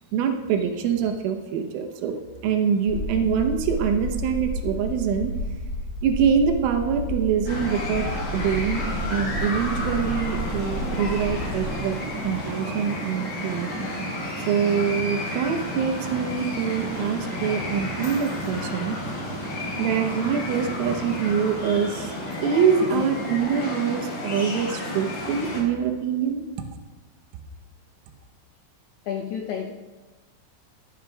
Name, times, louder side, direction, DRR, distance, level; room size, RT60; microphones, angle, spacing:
voice 1, 0.1-2.2 2.4-5.3 6.0-8.1 8.3-8.8 9.1-12.0 12.2-13.9 14.4-19.0 19.8-22.1 22.4-26.4, right 7 dB, 90° right, 4 dB, 3.6 m, -24 dB
sound 1, 2.9-12.4, left 1 dB, 30° right, 1.4 m, -32 dB
sound 2, 7.5-25.6, left 1 dB, 50° left, 4.9 m, -32 dB
sound 3, 7.7-22.2, right 4 dB, 60° right, 1.9 m, -37 dB
voice 2, 29.0-29.7, left 8 dB, 85° left, 3 dB, 2.3 m, -30 dB
22.0 x 9.5 x 2.4 m, 1.3 s
omnidirectional pair, 5.6 m